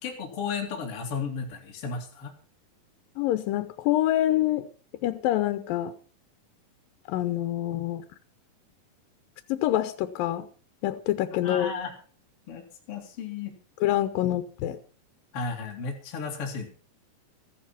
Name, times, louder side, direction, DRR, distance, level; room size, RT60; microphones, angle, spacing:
voice 1, 0.0-2.3 11.4-11.9 12.5-13.5 14.2-14.3 15.3-16.7, left 5 dB, 45° left, 1 dB, 3.3 m, -34 dB
voice 2, 3.2-4.7 5.0-5.9 7.1-8.0 9.5-10.5 10.8-11.7 13.8-14.8, left 13 dB, 85° left, 11 dB, 2.6 m, -26 dB
14.5 x 11.5 x 5.8 m, 0.40 s
omnidirectional pair, 4.0 m